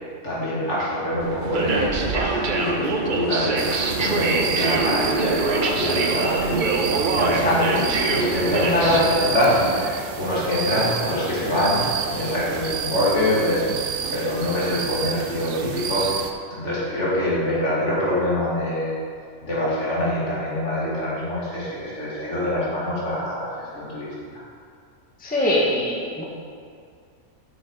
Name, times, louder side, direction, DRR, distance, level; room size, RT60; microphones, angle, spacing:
voice 1, 0.2-6.7 7.1-7.8 8.1-16.2 16.5-18.9 19.4-24.4, left 1 dB, 55° left, -7 dB, 2.7 m, -25 dB
sound 1, 1.2-9.9, right 3 dB, 45° right, 0.7 m, -24 dB
sound 2, 3.6-16.3, right 7 dB, 90° right, 1.1 m, -30 dB
voice 2, 8.6-9.1 25.2-26.2, left 1 dB, 5° left, -4 dB, 1.1 m, -21 dB
8.4 x 7.2 x 4.8 m, 2.2 s
omnidirectional pair, 1.5 m